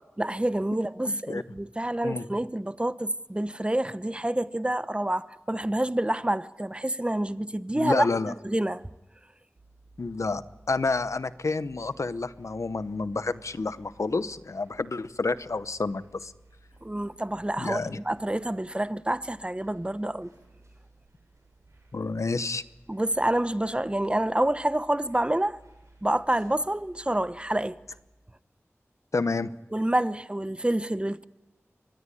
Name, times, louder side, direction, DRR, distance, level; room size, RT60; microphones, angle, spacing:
voice 1, 0.2-8.1 8.4-8.8 16.8-20.3 22.9-25.6 26.0-27.8 29.7-31.2, right 1 dB, 20° right, 0.9 m, -28 dB
voice 2, 1.1-1.4 2.0-2.3 7.7-8.3 10.0-16.3 17.6-18.0 21.9-22.6 29.1-29.5, left 3 dB, 85° left, 0.9 m, -29 dB
sound 1, 9.5-28.0, right 2 dB, 90° right, 6.8 m, -57 dB
24.0 x 20.0 x 9.9 m
wide cardioid pair, 50°, 5 cm